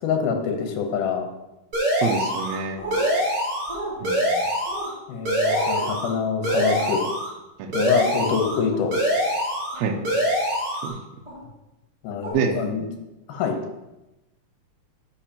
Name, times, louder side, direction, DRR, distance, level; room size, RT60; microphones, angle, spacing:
voice 1, 0.0-1.3 5.1-7.0 7.7-8.9 12.0-12.8 13.3-13.6, left 6 dB, 75° left, 3 dB, 2.4 m, -25 dB
sound 1, 1.7-2.6 2.9-3.8 4.0-4.9 5.2-6.1 6.4-7.3 7.7-8.6 8.9-9.8 10.0-10.9, equal, 45° right, 2.4 m, -24 dB
voice 2, 2.0-2.8 4.0-4.4 7.6-7.7 9.7-10.0 10.8-11.0 12.3-12.5, right 6 dB, 75° right, 5 dB, 1.7 m, -26 dB
sound 2, 2.8-3.0 3.7-3.9 4.7-4.9 5.4-5.9 6.4-6.7 8.7-8.8 9.7-10.0 11.2-11.4 12.2-12.3, equal, 15° right, 1.6 m, -32 dB
12.0 x 5.2 x 2.9 m, 0.99 s
omnidirectional pair, 3.8 m